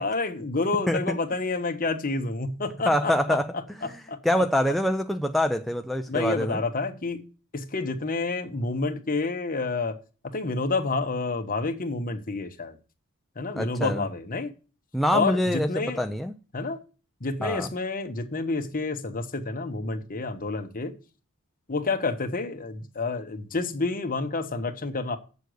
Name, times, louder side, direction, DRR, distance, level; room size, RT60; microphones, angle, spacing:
voice 1, 0.0-3.4 4.1-4.2 6.1-7.3 7.5-10.0 10.3-12.8 13.4-14.5 15.1-16.0 16.5-16.8 17.2-20.9 21.7-25.2, left 3 dB, 40° left, 1.2 m, -29 dB
voice 2, 2.9-6.6 13.6-14.1 14.9-16.4 17.4-17.7, equal, ahead, 0.4 m, -25 dB
8.0 x 6.9 x 6.4 m
head